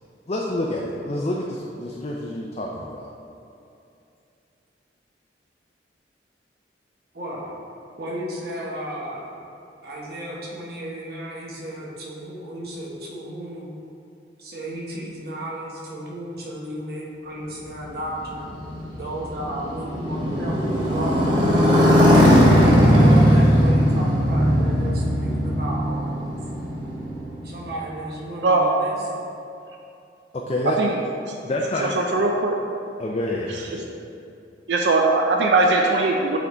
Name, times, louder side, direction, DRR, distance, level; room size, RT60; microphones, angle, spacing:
voice 1, 0.3-3.1 30.3-30.8 31.4-31.9 33.0-33.8, left 1 dB, 35° left, -2 dB, 0.4 m, -28 dB
voice 2, 7.1-7.5 8.0-9.3 9.8-13.7 14.4-18.5 18.9-22.1 22.9-26.4 27.4-29.3, right 1 dB, 55° right, -4 dB, 1.2 m, -34 dB
Motorcycle, 17.8-27.8, equal, 25° right, 1.0 m, -18 dB
voice 3, 32.0-32.6 33.7-33.8 34.7-36.4, right 3 dB, 75° right, 1 dB, 0.4 m, -20 dB
8.3 x 3.5 x 3.8 m, 2.6 s
head